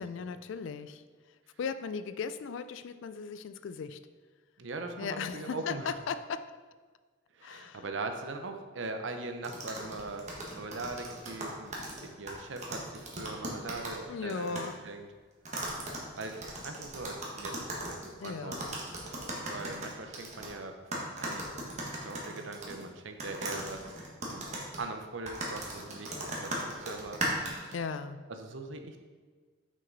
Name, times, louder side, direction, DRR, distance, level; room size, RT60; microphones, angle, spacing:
voice 1, 0.0-4.1 5.0-6.6 7.4-7.8 13.4-13.5 14.1-14.9 18.2-18.8 27.7-28.3, left 5 dB, 70° left, 0.3 m, -38 dB
voice 2, 4.6-5.9 7.3-14.6 14.8-15.1 16.2-18.6 19.5-21.5 21.8-24.0 24.3-24.5 24.8-27.6 28.3-29.0, right 3 dB, 65° right, 0.7 m, -41 dB
sound 1, 9.4-14.0 14.3-14.7 15.4-20.5 20.9-22.8 23.2-27.7, right 1 dB, 35° right, 1.3 m, -38 dB
6.0 x 5.7 x 3.9 m
head